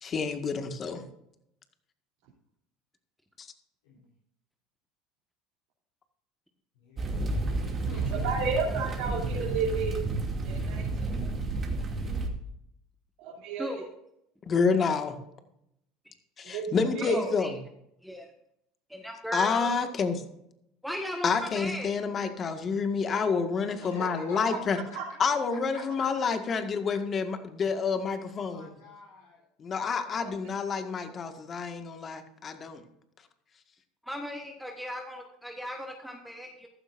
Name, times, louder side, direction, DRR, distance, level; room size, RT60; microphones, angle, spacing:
voice 1, 0.0-1.0 3.4-3.5 14.5-15.2 16.4-17.6 19.3-20.2 21.2-24.8 25.2-28.8 29.6-32.8, left 5 dB, 35° left, 7 dB, 1.8 m, -28 dB
voice 2, 6.8-7.3 7.8-8.3 23.8-24.8 26.0-26.1 28.5-29.4, left 4 dB, 80° left, -5 dB, 3.7 m, -45 dB
sound 1, 7.0-12.3, right 3 dB, 35° right, 2.6 m, -31 dB
voice 3, 8.1-9.9 10.4-11.1 13.2-13.7 16.5-17.3 24.9-25.0, right 5 dB, 70° right, -5 dB, 3.3 m, -32 dB
voice 4, 17.1-17.5 18.0-18.3 18.9-19.7 20.8-21.9 30.1-30.2 34.0-36.7, equal, ahead, 2 dB, 1.6 m, -37 dB
15.0 x 12.0 x 2.6 m, 0.78 s
hypercardioid pair, 80°, 0 cm